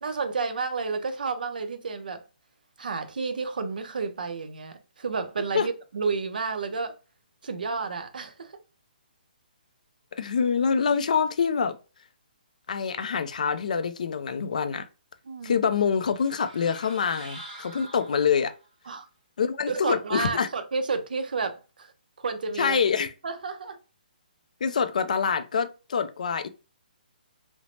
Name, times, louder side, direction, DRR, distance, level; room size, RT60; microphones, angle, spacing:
voice 1, 0.0-2.2 2.8-6.9 7.4-8.6 15.3-15.6 18.9-19.1 19.7-21.9 22.2-22.8 23.2-23.8, right 4 dB, 70° right, 0.6 m, -31 dB
voice 2, 10.1-11.8 12.7-14.9 15.4-18.5 19.4-20.5 22.6-23.1 24.6-26.5, left 6 dB, 55° left, 0.3 m, -25 dB
sound 1, 16.0-18.7, right 2 dB, 25° right, 1.4 m, -45 dB
3.2 x 2.0 x 2.6 m
hypercardioid pair, 170°, 5 cm